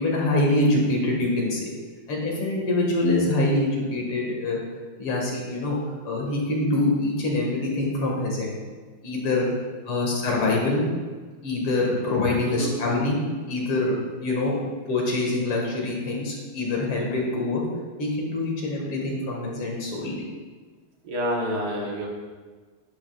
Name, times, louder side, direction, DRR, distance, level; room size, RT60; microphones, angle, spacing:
voice 1, 0.0-1.6 2.1-4.6 5.0-5.8 6.0-8.5 9.0-9.5 9.9-10.8 11.4-13.2 13.5-14.5 14.9-17.6 18.0-20.2, left 2 dB, 80° left, -2 dB, 2.8 m, -25 dB
voice 2, 21.0-22.1, equal, 50° right, -2 dB, 1.7 m, -28 dB
11.5 x 9.7 x 2.4 m, 1.4 s
omnidirectional pair, 2.3 m